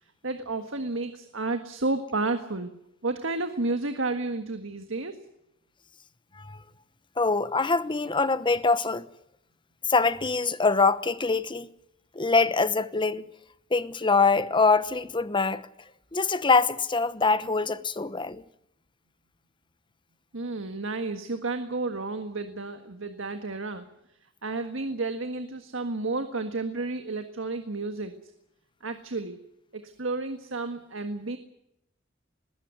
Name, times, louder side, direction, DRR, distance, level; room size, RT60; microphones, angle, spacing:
voice 1, 0.2-2.7 3.0-5.2 20.3-23.9 24.4-28.3 28.8-29.4 29.7-31.4, right 3 dB, 85° right, 1.7 m, -31 dB
voice 2, 7.2-9.1 9.9-11.7 12.1-13.3 13.7-15.6 16.1-18.4, left 4 dB, 25° left, 1.0 m, -24 dB
20.5 x 16.5 x 9.4 m
head